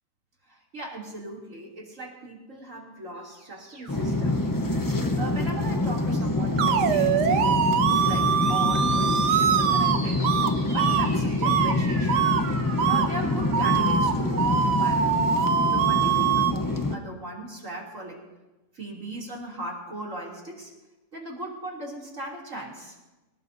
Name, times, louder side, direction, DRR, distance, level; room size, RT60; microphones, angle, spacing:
voice 1, 0.5-4.9 5.1-10.2 10.7-12.3 12.9-15.1 15.6-18.2 18.7-20.7 21.1-23.0, right 2 dB, 45° right, -3 dB, 3.3 m, -38 dB
sound 1, 3.1-5.4 5.9-6.5 8.2-16.4, equal, 60° right, 3.8 m, -41 dB
sound 2, 3.9-17.0, left 2 dB, 20° left, 0.5 m, -26 dB
sound 3, 6.6-10.0 10.2-10.5 10.8-11.1 11.4-11.7 12.1-12.4 12.8-13.1 13.5-16.5, right 8 dB, 80° right, 1.4 m, -23 dB
26.5 x 18.0 x 2.7 m, 1.1 s
omnidirectional pair, 1.8 m